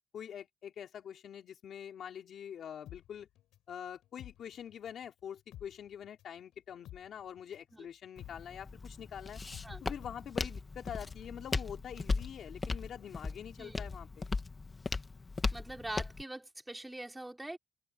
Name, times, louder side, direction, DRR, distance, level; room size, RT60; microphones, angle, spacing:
voice 1, 0.1-3.3 3.7-9.4 9.8-14.3, left 9 dB, 50° left, 3.5 m, -45 dB
sound 1, 2.9-5.1 5.4-13.1 13.4-13.5, left 13 dB, 80° left, 5.7 m, -53 dB
Walk footsteps, 8.2-16.2, left 3 dB, 20° left, 1.3 m, -38 dB
voice 2, 15.5-17.6, right 1 dB, 5° right, 4.0 m, -43 dB
cardioid pair, 150°, 0 cm